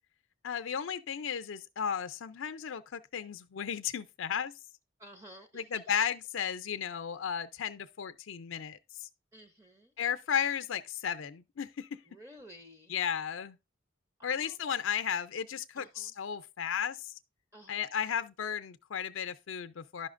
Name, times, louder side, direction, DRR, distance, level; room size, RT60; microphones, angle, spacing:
voice 1, 0.4-4.5 5.5-9.1 10.0-11.9 12.9-13.6 14.2-17.2 17.7-20.1, left 8 dB, 75° left, 0.4 m, -34 dB
voice 2, 5.0-5.8 9.3-9.9 12.0-13.0 14.2-14.6 15.7-16.1 17.5-17.9, equal, 15° right, 0.6 m, -53 dB
11.0 x 5.6 x 2.5 m
head